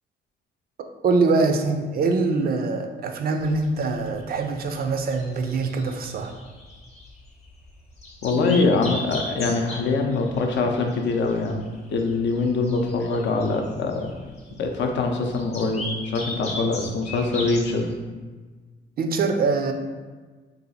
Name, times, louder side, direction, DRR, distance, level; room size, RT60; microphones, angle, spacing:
voice 1, 1.0-6.4 19.0-19.7, right 3 dB, 50° right, 5 dB, 0.4 m, -23 dB
sound 1, 3.4-17.9, left 2 dB, 35° left, 0.8 m, -38 dB
voice 2, 8.2-11.6 11.9-14.1 14.6-17.9, left 3 dB, 65° left, 3 dB, 0.5 m, -23 dB
2.7 x 2.4 x 4.0 m, 1.4 s
cardioid pair, 90°, 20 cm